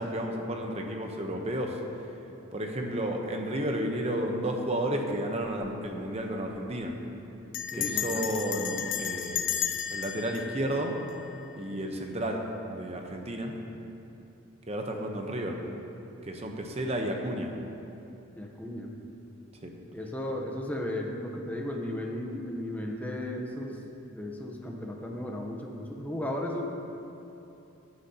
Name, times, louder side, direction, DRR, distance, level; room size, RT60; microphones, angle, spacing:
voice 1, 0.0-1.8 2.5-6.9 7.8-9.5 9.9-11.0 11.6-12.4 12.7-13.6 14.7-15.6 16.2-17.5 19.6-19.7, right 1 dB, 30° right, 2 dB, 0.9 m, -32 dB
Bell, 5.4-5.8 6.1-6.2 6.4-6.8 7.5-11.6, left 9 dB, 60° left, 0.5 m, -34 dB
voice 2, 7.7-8.2 18.4-19.0 19.9-23.8 24.0-26.6, left 1 dB, 10° left, 0 dB, 0.8 m, -35 dB
13.0 x 10.0 x 2.9 m, 2.8 s
head